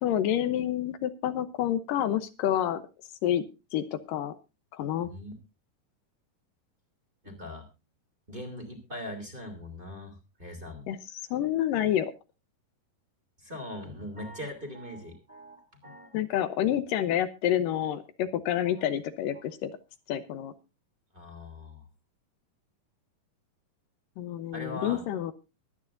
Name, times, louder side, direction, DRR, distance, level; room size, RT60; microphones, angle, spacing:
voice 1, 0.0-2.8 3.2-3.5 3.7-4.3 4.7-5.1 10.9-12.1 16.1-19.7 20.1-20.5 24.2-25.3, left 11 dB, 80° left, 11 dB, 2.5 m, -28 dB
voice 2, 5.0-5.3 7.2-7.7 8.3-10.9 13.4-16.2 21.1-21.8 24.5-25.0, left 1 dB, 15° right, 2 dB, 3.0 m, -41 dB
23.0 x 9.6 x 2.6 m, 0.28 s
omnidirectional pair, 4.0 m